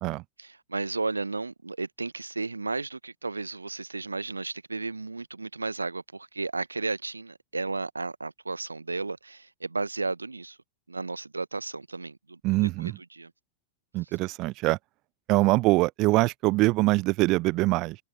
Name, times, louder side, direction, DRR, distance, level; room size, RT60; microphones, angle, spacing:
voice 1, 0.4-10.6 10.9-13.3, right 3 dB, 80° right, 1.3 m, -34 dB
voice 2, 12.4-13.0 13.9-14.8 15.3-18.0, right 21 dB, 40° right, 0.6 m, -23 dB
figure-of-eight pair, 90°, 0 cm